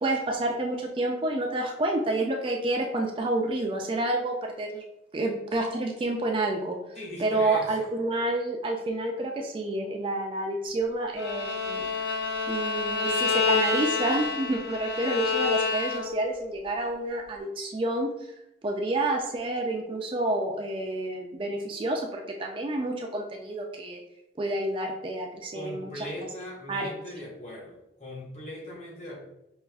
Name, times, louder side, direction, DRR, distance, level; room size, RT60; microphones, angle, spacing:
voice 1, 0.0-4.8 5.1-6.8 7.2-11.9 12.5-18.1 18.6-24.0 24.4-26.0 26.7-26.9, right 2 dB, 30° right, 2 dB, 0.3 m, -29 dB
voice 2, 6.9-7.9 25.5-29.3, left 1 dB, 35° left, -2 dB, 0.9 m, -40 dB
Bowed string instrument, 11.2-16.3, left 4 dB, 65° left, 0.6 m, -28 dB
5.3 x 2.4 x 2.3 m, 0.83 s
head